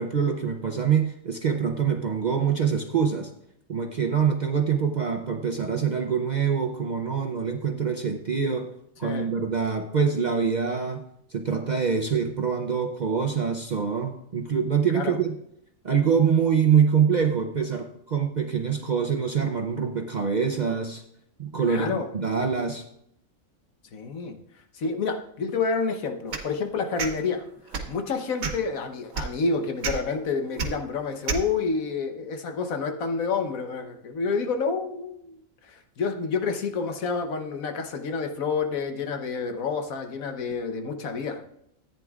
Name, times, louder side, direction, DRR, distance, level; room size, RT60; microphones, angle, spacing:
voice 1, 0.0-3.3 3.7-8.7 9.0-11.0 11.3-15.4 15.8-21.0 21.4-22.8, right 6 dB, 50° right, 4 dB, 0.5 m, -25 dB
voice 2, 21.6-22.1 23.9-24.4 24.7-27.4 27.9-41.5, left 4 dB, 80° left, 6 dB, 1.4 m, -29 dB
sound 1, 26.3-26.5 27.0-27.1 27.7-27.9 28.4-28.7 29.1-29.3 29.8-29.9 30.6-30.7 31.3-31.4, right 5 dB, 80° right, 1.4 m, -28 dB
14.0 x 9.1 x 2.4 m, 0.74 s
omnidirectional pair, 1.4 m